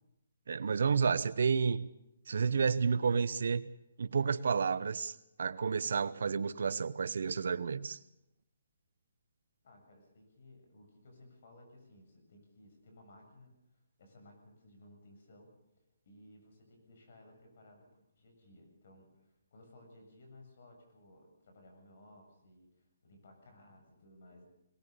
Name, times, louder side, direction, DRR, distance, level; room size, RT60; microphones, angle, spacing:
voice 1, 0.5-1.9 2.3-3.6 4.0-5.1 5.4-8.0, right 5 dB, 70° right, 16 dB, 0.9 m, -30 dB
voice 2, 9.6-24.5, left 1 dB, 55° left, 4 dB, 7.8 m, -59 dB
22.5 x 19.0 x 6.9 m, 0.84 s
hypercardioid pair, 160°, 0 cm